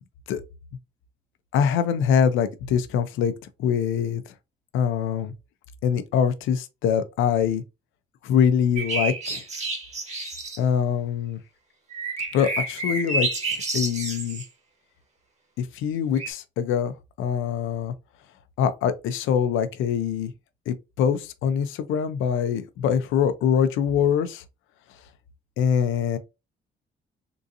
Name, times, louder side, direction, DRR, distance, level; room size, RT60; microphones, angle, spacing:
voice 1, 1.5-3.3 3.6-4.2 4.7-5.3 5.8-7.6 8.2-9.4 10.6-11.4 12.3-14.4 15.6-17.9 18.6-20.3 20.7-24.4 25.6-26.2, left 8 dB, 90° left, 0.6 m, -24 dB
sound 1, 8.8-10.6 11.9-14.4 16.2-16.3, right 3 dB, 35° right, 1.4 m, -29 dB
3.8 x 2.6 x 2.5 m
cardioid pair, 90°, 20 cm